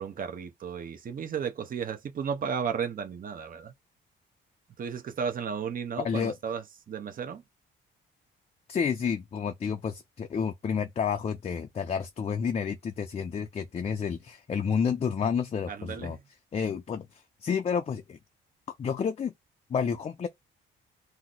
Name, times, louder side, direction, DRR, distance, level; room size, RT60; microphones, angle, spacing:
voice 1, 0.0-3.7 4.8-7.4 15.7-16.2, right 7 dB, 45° right, 0.7 m, -34 dB
voice 2, 8.7-16.2 16.5-17.1 17.4-18.2 18.8-19.3 19.7-20.3, left 6 dB, 30° left, 0.4 m, -30 dB
2.8 x 2.1 x 3.7 m
cardioid pair, 90°, 20 cm